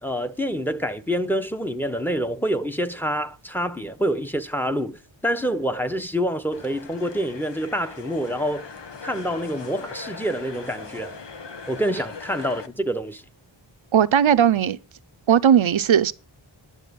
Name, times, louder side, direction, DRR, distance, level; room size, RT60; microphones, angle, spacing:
voice 1, 0.0-8.7 9.0-11.2 11.7-13.2, equal, 5° left, 1.1 m, -27 dB
sound 1, 6.5-12.7, left 5 dB, 65° left, 1.2 m, -40 dB
voice 2, 13.9-14.8 15.3-16.1, right 9 dB, 75° right, 0.8 m, -17 dB
12.0 x 7.0 x 5.3 m
wide cardioid pair, 70°, 47 cm